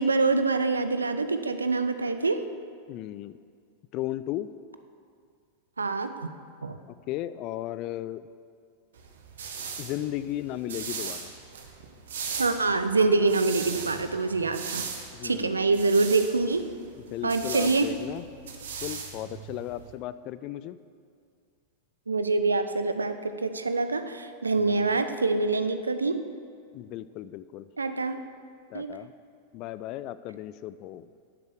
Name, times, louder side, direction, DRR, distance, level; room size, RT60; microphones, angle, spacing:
voice 1, 0.0-2.4 5.8-6.2 6.6-6.8 12.4-14.8 15.2-16.6 17.2-18.0 22.1-26.2 27.8-28.3 28.7-29.0, right 3 dB, 75° right, 10 dB, 0.7 m, -25 dB
voice 2, 2.9-3.4 3.9-4.5 7.1-8.2 9.8-11.3 15.1-15.6 17.1-18.2 18.8-20.8 24.6-25.0 26.7-27.7 28.7-29.1 29.5-31.1, left 14 dB, 40° left, 15 dB, 0.4 m, -35 dB
sound 1, 9.0-19.9, right 6 dB, 60° right, 1.3 m, -39 dB
11.0 x 8.0 x 6.9 m, 2.3 s
figure-of-eight pair, 90°, 0 cm